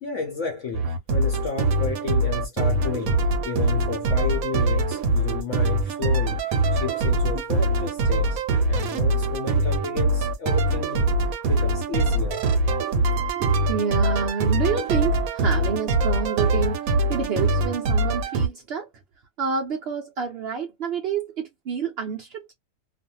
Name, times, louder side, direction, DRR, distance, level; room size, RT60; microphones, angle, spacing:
voice 1, 0.0-12.4, left 5 dB, 65° left, 0.8 m, -32 dB
sound 1, 0.7-18.5, right 2 dB, 70° right, 0.9 m, -23 dB
voice 2, 13.4-18.9 19.4-22.5, right 6 dB, 85° right, 0.5 m, -28 dB
2.5 x 2.4 x 2.7 m
omnidirectional pair, 1.8 m